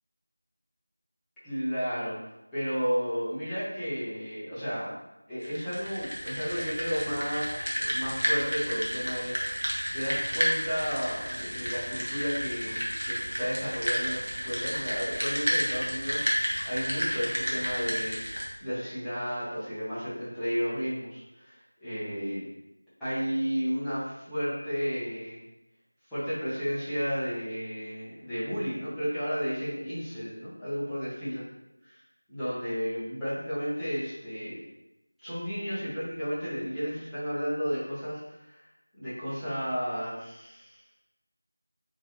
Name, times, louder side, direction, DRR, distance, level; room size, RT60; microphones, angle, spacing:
voice 1, 1.4-2.2 2.5-4.9 5.3-18.2 18.6-22.4 23.0-25.4 26.1-31.4 32.3-34.6 35.2-38.7 39.0-40.8, equal, ahead, -18 dB, 0.7 m, -33 dB
sound 1, 5.4-18.4, equal, 75° right, 1.1 m, -31 dB
4.6 x 3.0 x 2.9 m, 0.93 s
figure-of-eight pair, 170°, 0 cm